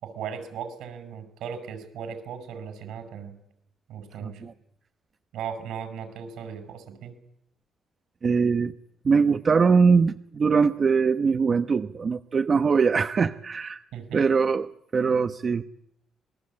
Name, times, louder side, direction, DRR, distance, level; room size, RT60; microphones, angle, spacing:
voice 1, 0.0-3.3 3.9-4.5 5.3-7.1 13.9-14.3, right 7 dB, 85° right, 9 dB, 6.0 m, -37 dB
voice 2, 4.2-4.5 8.2-8.7 9.0-13.8 14.1-15.6, right 5 dB, 40° right, 8 dB, 1.0 m, -22 dB
27.0 x 20.5 x 8.7 m, 0.76 s
cardioid pair, 90°, 0 cm